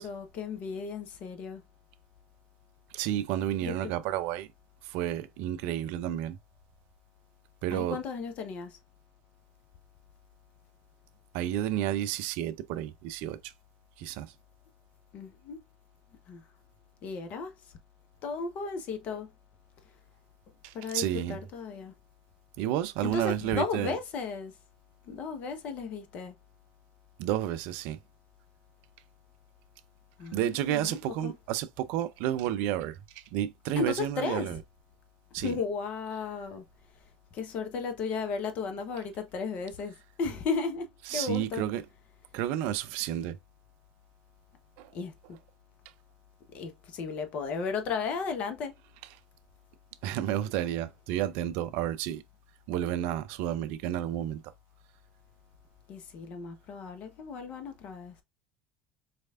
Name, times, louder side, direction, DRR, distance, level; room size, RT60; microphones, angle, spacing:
voice 1, 0.0-1.6 3.6-3.7 7.7-8.8 15.1-15.6 16.3-16.4 17.0-17.5 18.2-19.3 20.7-21.9 23.0-24.5 25.1-26.3 30.2-31.3 33.7-34.5 35.4-36.6 37.3-41.6 44.9-45.4 46.5-48.8 55.9-58.1, left 5 dB, 50° left, 0.9 m, -35 dB
voice 2, 2.9-4.5 4.8-6.4 7.6-8.0 11.3-13.5 14.0-14.3 20.6-21.4 22.6-23.9 27.2-28.0 30.3-34.6 35.3-35.6 41.1-41.8 42.3-43.4 44.8-44.9 50.0-52.2 52.7-54.4, right 12 dB, 65° right, 0.4 m, -31 dB
4.1 x 3.2 x 2.4 m
hypercardioid pair, 75°, 3 cm